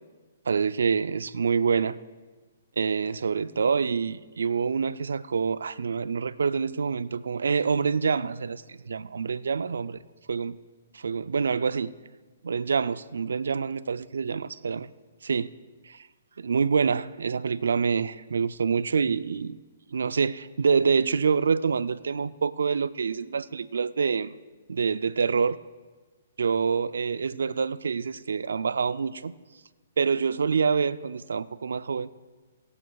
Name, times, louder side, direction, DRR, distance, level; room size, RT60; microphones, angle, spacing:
voice 1, 0.5-2.0 2.8-10.0 10.3-10.6 10.9-11.9 12.4-14.9 15.2-15.5 15.9-16.1 16.4-19.6 19.9-24.3 24.7-25.6 26.4-29.3 30.0-32.1, right 5 dB, 85° right, 16 dB, 0.3 m, -26 dB
25.5 x 8.6 x 2.3 m, 1.3 s
hypercardioid pair, 145°, 0 cm